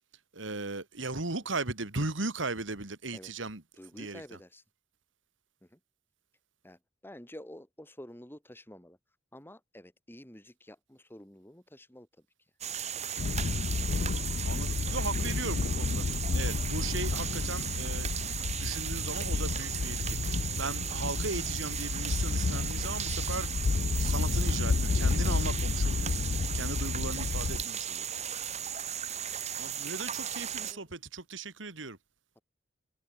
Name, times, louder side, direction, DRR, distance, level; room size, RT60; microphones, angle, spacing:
voice 1, 0.4-3.6 4.0-4.2 14.4-16.1 16.3-18.1 18.5-23.5 23.8-26.2 26.5-28.1 29.6-32.0, right 3 dB, 80° right, 2.5 m, -37 dB
voice 2, 3.7-4.6 5.7-5.8 6.6-9.0 9.3-12.3 27.4-27.7 29.6-29.8 30.6-30.9, left 1 dB, 10° left, 2.8 m, -50 dB
sound 1, 12.6-30.7, right 9 dB, 35° right, 2.0 m, -36 dB
sound 2, 13.2-27.6, left 4 dB, 55° left, 0.5 m, -31 dB
head